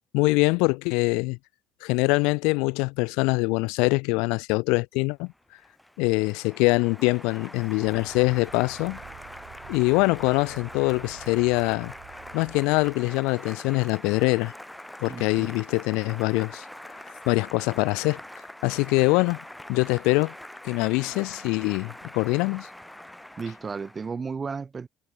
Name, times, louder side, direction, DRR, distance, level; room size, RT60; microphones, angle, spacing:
voice 1, 0.1-1.4 1.8-5.3 6.0-9.0 9.7-11.9 12.3-14.5 15.0-16.6 17.3-18.2 18.6-19.4 19.7-20.3 20.6-22.7, left 29 dB, 80° left, 0.4 m, -24 dB
Applause, 5.3-24.2, left 1 dB, 5° left, 2.2 m, -43 dB
sound 1, 7.8-13.0, right 15 dB, 65° right, 2.3 m, -49 dB
voice 2, 15.1-15.6 23.4-24.9, right 5 dB, 30° right, 1.3 m, -34 dB
supercardioid pair, 95°, 0 cm